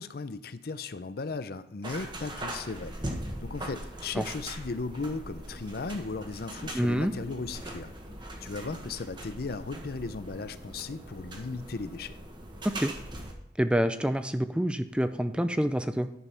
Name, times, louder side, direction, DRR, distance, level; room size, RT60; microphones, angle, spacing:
voice 1, 0.0-2.9 3.4-7.9 8.4-12.2, left 3 dB, 60° left, 13 dB, 0.6 m, -36 dB
sound 1, 1.8-13.3, right 1 dB, 25° right, 1.3 m, -41 dB
voice 2, 6.7-7.1 12.8-12.9 13.6-16.1, equal, 5° right, 10 dB, 0.4 m, -27 dB
11.0 x 5.4 x 5.7 m, 0.83 s
head